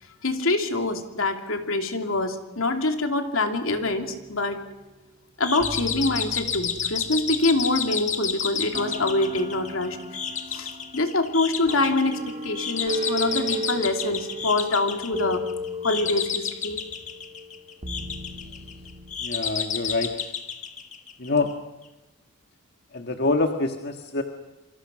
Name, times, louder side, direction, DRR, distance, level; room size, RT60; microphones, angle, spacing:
voice 1, 0.2-4.6 5.4-10.0 10.5-15.4 15.8-16.8, left 2 dB, 75° left, 5 dB, 2.7 m, -25 dB
sound 1, 3.7-4.9 5.6-8.2 8.7-19.2, equal, 30° right, 1.9 m, -36 dB
sound 2, 5.4-21.5, left 7 dB, 35° left, 1.6 m, -31 dB
voice 2, 19.2-20.3 21.2-21.5 22.9-24.2, left 3 dB, 50° left, 4 dB, 1.7 m, -26 dB
27.5 x 25.0 x 6.2 m, 1.0 s
head